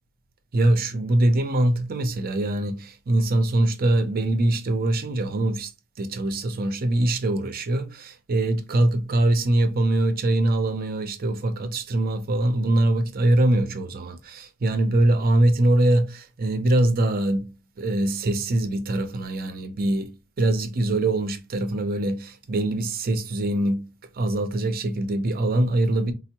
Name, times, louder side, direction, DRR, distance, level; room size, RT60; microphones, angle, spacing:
voice 1, 0.5-5.7 6.0-17.5 17.8-20.1 20.4-23.9 24.1-26.1, right 1 dB, 45° right, 0.5 m, -23 dB
4.2 x 2.0 x 2.8 m
head